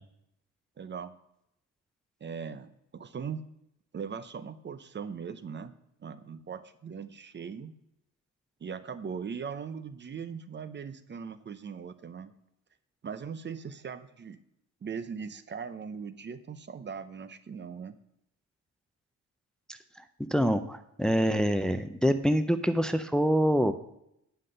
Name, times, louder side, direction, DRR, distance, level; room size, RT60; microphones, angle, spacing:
voice 1, 0.8-1.1 2.2-3.4 3.9-5.7 6.0-7.7 8.6-12.3 13.0-14.4 14.8-18.0, right 6 dB, 35° right, 13 dB, 0.7 m, -39 dB
voice 2, 20.3-23.7, equal, ahead, 10 dB, 0.6 m, -25 dB
9.8 x 5.7 x 6.7 m, 0.78 s
cardioid pair, 90°, 30 cm